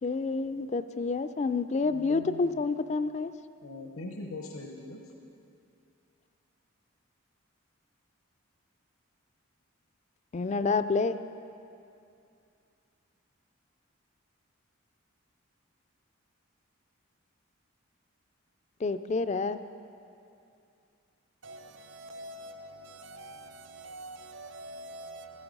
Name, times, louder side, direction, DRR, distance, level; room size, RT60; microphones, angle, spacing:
voice 1, 0.0-3.3 10.3-11.2 18.8-19.6, left 4 dB, 35° left, 0.3 m, -28 dB
voice 2, 1.8-2.6 3.6-5.0, left 2 dB, 80° left, 0.9 m, -42 dB
voice 3, 21.4-25.4, right 1 dB, 60° right, 0.7 m, -45 dB
13.0 x 10.5 x 5.3 m
head